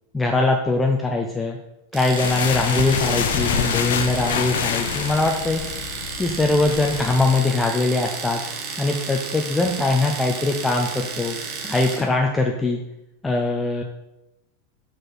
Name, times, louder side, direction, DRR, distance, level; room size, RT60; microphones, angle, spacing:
voice 1, 0.1-1.6 1.9-5.6 6.2-8.4 8.8-11.4 11.6-12.8 13.2-13.8, left 2 dB, 10° left, 1 dB, 0.6 m, -22 dB
Domestic sounds home sounds, 1.9-12.1, right 5 dB, 40° right, 1.1 m, -32 dB
sound 1, 2.1-7.4, left 8 dB, 60° left, 0.4 m, -27 dB
6.2 x 4.7 x 4.2 m, 0.89 s
figure-of-eight pair, 90°, 0 cm